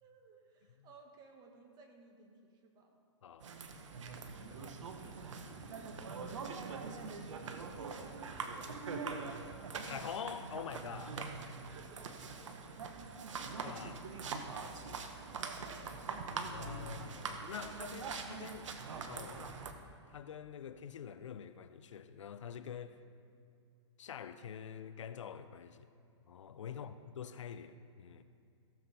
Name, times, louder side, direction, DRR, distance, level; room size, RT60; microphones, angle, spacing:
voice 1, 0.0-2.9 4.0-4.8 7.9-8.5 11.4-12.3 12.8-12.9 13.3-13.7 15.6-16.2 26.7-27.0, right 4 dB, 25° right, 2 dB, 1.7 m, -60 dB
sound 1, 3.4-19.7, right 4 dB, 80° right, 1.1 m, -43 dB
voice 2, 4.5-5.2 9.8-11.2 13.6-14.3 16.3-18.7 19.1-19.6 20.1-23.0 24.0-25.9 26.3-28.2, left 8 dB, 80° left, 12 dB, 0.6 m, -46 dB
16.0 x 7.4 x 4.2 m, 2.4 s
hypercardioid pair, 130°, 16 cm